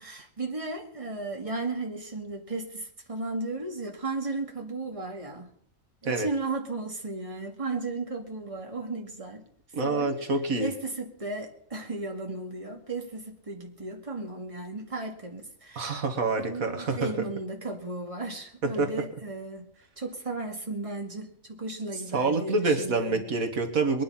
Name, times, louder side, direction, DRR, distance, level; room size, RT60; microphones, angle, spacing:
voice 1, 0.0-5.5 6.0-9.4 9.8-10.2 10.6-16.0 16.4-19.7 20.0-23.3, right 3 dB, 25° right, 2.3 m, -35 dB
voice 2, 9.7-10.7 15.8-17.1 18.6-18.9 22.1-24.0, right 3 dB, 80° right, 2.1 m, -27 dB
22.0 x 10.0 x 5.7 m
omnidirectional pair, 1.4 m